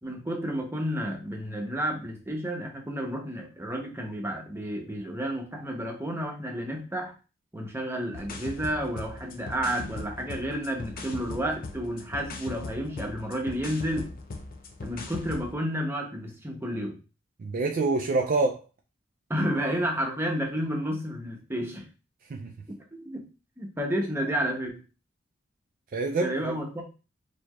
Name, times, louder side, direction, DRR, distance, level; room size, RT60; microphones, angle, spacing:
voice 1, 0.0-7.1 7.5-14.1 14.8-17.0 19.3-21.9 22.7-23.2 23.6-24.8 26.2-26.8, equal, 15° right, 0.8 m, -31 dB
sound 1, 8.1-15.5, left 3 dB, 50° left, 0.5 m, -39 dB
voice 2, 17.4-18.6 22.3-22.5 25.9-26.5, right 3 dB, 45° right, 0.4 m, -26 dB
4.5 x 2.8 x 2.3 m
head